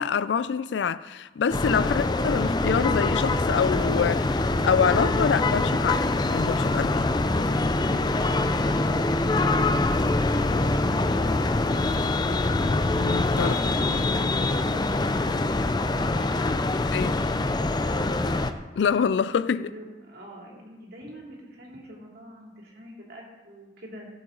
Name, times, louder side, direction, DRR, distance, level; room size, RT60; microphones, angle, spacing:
voice 1, 0.0-7.0 12.7-13.5 16.9-17.2 18.8-19.7, left 6 dB, 80° left, 0.4 m, -26 dB
sound 1, 1.5-18.5, left 2 dB, 25° left, 0.5 m, -24 dB
voice 2, 7.6-12.0 13.3-14.1 14.5-16.6 17.7-18.0 19.5-24.1, equal, 60° right, 2.7 m, -43 dB
17.0 x 7.1 x 3.8 m
head